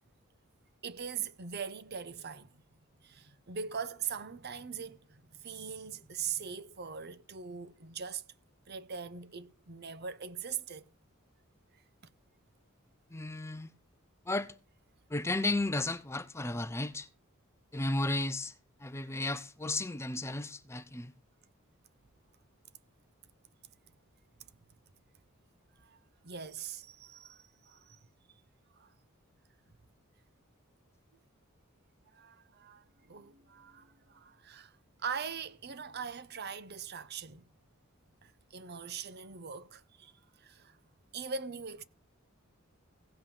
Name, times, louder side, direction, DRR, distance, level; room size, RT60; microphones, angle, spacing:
voice 1, 0.8-2.6 3.0-8.2 8.7-10.9 25.8-26.0 26.2-28.0 28.7-28.9 32.1-34.7 35.0-37.4 38.2-40.1 40.4-40.8 41.1-41.8, right 6 dB, 50° right, 0.9 m, -41 dB
voice 2, 13.1-13.7 14.3-14.5 15.1-17.1 17.7-18.5 18.8-21.1, left 2 dB, 15° left, 0.6 m, -34 dB
16.5 x 5.7 x 6.9 m
head